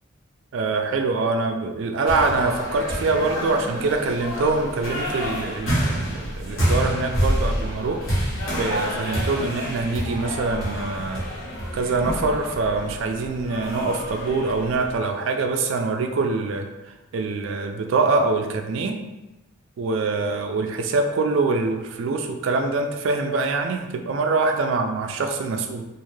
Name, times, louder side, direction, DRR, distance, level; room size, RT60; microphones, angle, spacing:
voice 1, 0.5-8.0 8.5-11.2 11.7-16.7 17.1-19.0 19.8-25.9, right 3 dB, 70° right, 5 dB, 0.3 m, -24 dB
sound 1, 2.1-15.0, equal, 75° left, 1.2 m, -28 dB
2.5 x 2.4 x 3.1 m, 1.0 s
head